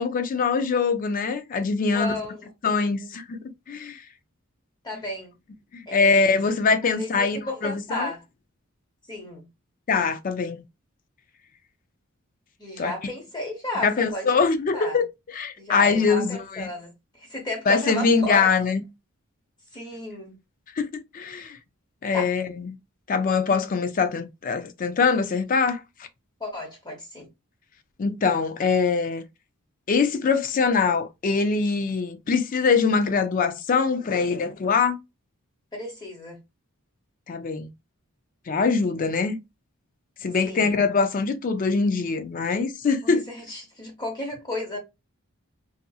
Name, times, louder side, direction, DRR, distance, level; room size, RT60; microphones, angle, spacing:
voice 1, 0.0-2.2 2.6-3.4 3.7-4.0 5.9-8.1 9.9-10.6 12.8-12.9 13.8-15.1 15.3-16.7 17.7-18.8 20.8-21.6 22.0-22.7 23.1-25.8 28.0-29.2 29.9-35.0 37.3-37.7 38.5-39.4 40.2-43.2, left 4 dB, 40° left, 0.4 m, -23 dB
voice 2, 1.9-2.4 2.8-2.9 4.8-5.3 5.9-6.5 6.8-8.2 9.1-9.5 12.6-14.4 14.7-15.0 15.6-16.9 17.2-18.5 19.7-20.3 22.1-22.3 26.4-27.3 35.7-36.4 40.4-40.9 43.0-44.8, left 2 dB, 20° left, 0.8 m, -34 dB
2.7 x 2.5 x 2.3 m
head